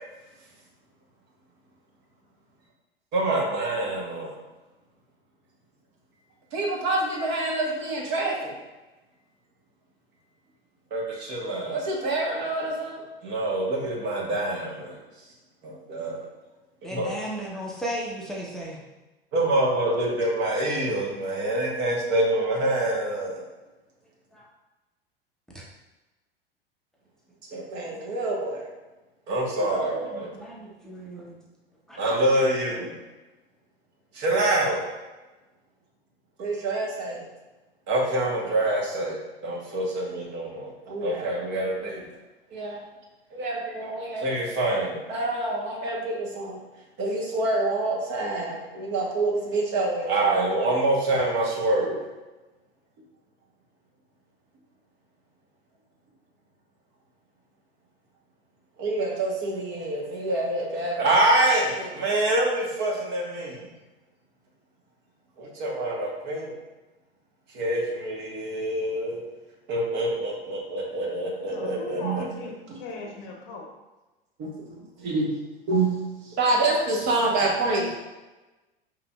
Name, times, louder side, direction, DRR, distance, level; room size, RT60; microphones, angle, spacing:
voice 1, 3.1-4.3 6.5-8.5 10.9-15.0 15.6-16.3 16.9-17.1 19.3-23.4 27.5-28.6 29.3-30.3 32.0-32.9 34.1-34.9 36.4-37.2 37.9-42.0 42.5-42.8 43.3-46.6 47.0-52.1 58.8-63.7 65.4-66.5 67.5-69.2 69.7-72.3 72.7-72.8 74.4-75.3 75.7-76.0 76.4-78.0, right 2 dB, 35° right, -2 dB, 1.0 m, -26 dB
voice 2, 16.8-18.8 24.3-24.5 29.5-29.7 30.1-31.4 31.9-32.0, equal, ahead, -4 dB, 0.7 m, -35 dB
voice 3, 71.5-73.6, left 3 dB, 45° left, 0 dB, 0.8 m, -38 dB
5.0 x 3.1 x 2.2 m, 1.1 s
figure-of-eight pair, 85°, 30 cm